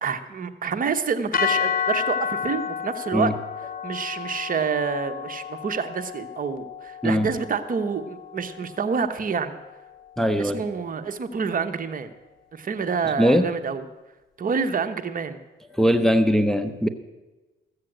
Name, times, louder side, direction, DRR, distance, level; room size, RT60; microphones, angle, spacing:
voice 1, 0.0-3.3 3.8-9.6 10.4-12.1 12.5-13.8 14.4-15.4, right 5 dB, 45° right, 9 dB, 1.0 m, -27 dB
sound 1, 1.3-9.6, left 8 dB, 45° left, 0.8 m, -31 dB
voice 2, 10.2-10.6 13.2-13.5 15.8-16.9, equal, ahead, 7 dB, 0.8 m, -20 dB
14.5 x 7.5 x 7.8 m, 1.1 s
cardioid pair, 90°, 20 cm